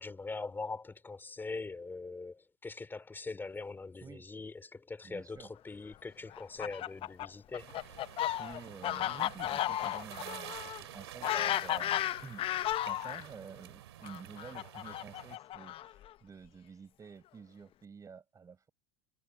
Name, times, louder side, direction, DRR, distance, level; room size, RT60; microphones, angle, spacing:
voice 1, 0.0-7.7, left 3 dB, 15° left, 3.4 m, -42 dB
voice 2, 5.0-5.5 8.4-11.9 12.2-18.7, right 6 dB, 25° right, 7.0 m, -50 dB
Fowl, 6.3-13.2 14.0-16.1, left 13 dB, 40° left, 0.8 m, -34 dB
sound 1, 7.6-15.4, right 14 dB, 85° right, 2.4 m, -49 dB
hypercardioid pair, 100°, 13 cm